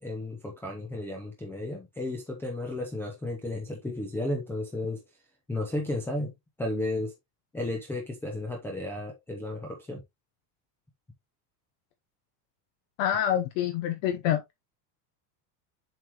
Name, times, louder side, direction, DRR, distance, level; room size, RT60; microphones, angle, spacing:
voice 1, 0.0-5.0 5.5-6.3 6.6-7.1 7.5-10.0, left 1 dB, 5° left, 0.7 m, -33 dB
voice 2, 13.0-14.4, left 10 dB, 50° left, 0.9 m, -26 dB
7.4 x 4.9 x 2.9 m
cardioid pair, 175°, 48 cm